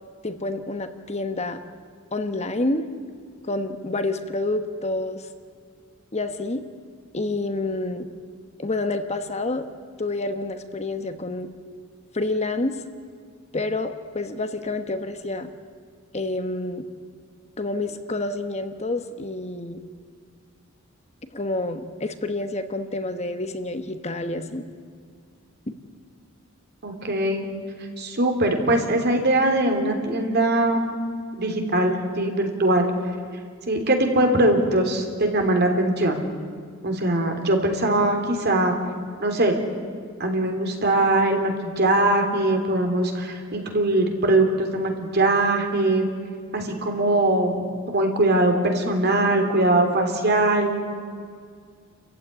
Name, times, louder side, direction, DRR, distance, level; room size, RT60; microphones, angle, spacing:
voice 1, 0.2-1.6 2.1-2.9 3.5-5.3 6.1-6.6 7.1-8.1 8.6-9.7 10.0-11.5 12.1-12.8 13.5-15.5 16.1-16.8 17.6-19.8 21.3-24.7, left 2 dB, 30° left, 8 dB, 1.2 m, -28 dB
voice 2, 26.8-27.5 28.0-30.8 31.3-32.9 33.7-36.2 36.8-38.7 39.2-39.6 40.2-46.1 46.5-50.7, right 2 dB, 50° right, 4 dB, 3.3 m, -21 dB
29.0 x 15.0 x 9.8 m, 2.1 s
head